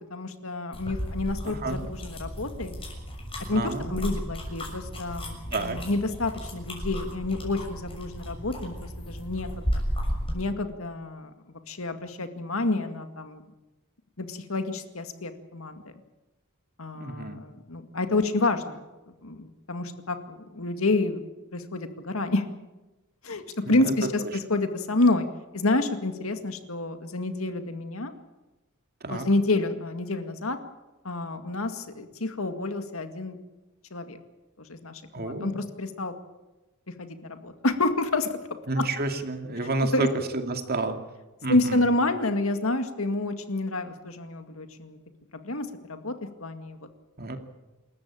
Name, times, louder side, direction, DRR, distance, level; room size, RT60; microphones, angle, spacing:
voice 1, 0.1-2.8 3.5-9.6 10.3-13.4 14.2-15.8 16.8-18.8 19.2-21.2 21.5-22.5 23.2-23.4 23.7-25.3 25.5-28.1 29.1-30.6 31.0-33.4 33.9-34.2 34.7-36.1 37.0-38.3 38.8-38.9 39.9-40.1 41.5-45.0 45.3-46.1 46.4-46.8, left 2 dB, 75° left, 8 dB, 2.1 m, -28 dB
sound 1, 0.7-10.4, equal, 25° left, 6.6 m, -34 dB
voice 2, 1.4-1.8 3.5-4.2 5.5-5.8 17.0-17.4 23.7-23.9 29.0-29.3 35.1-35.6 38.7-41.0 41.4-41.8 47.2-47.4, right 2 dB, 50° right, 5 dB, 2.5 m, -30 dB
27.5 x 14.0 x 8.9 m, 1.1 s
head